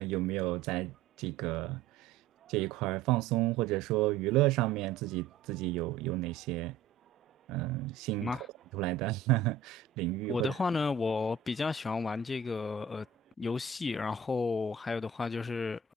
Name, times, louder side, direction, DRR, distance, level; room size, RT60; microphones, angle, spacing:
voice 1, 0.0-1.8 2.5-6.7 7.5-8.3 8.7-10.5, right 20 dB, 90° right, 0.5 m, -31 dB
sound 1, 0.5-13.3, right 11 dB, 50° right, 3.4 m, -63 dB
voice 2, 10.3-13.1 13.4-15.9, left 4 dB, 20° left, 0.9 m, -33 dB
cardioid pair, 145°, 0 cm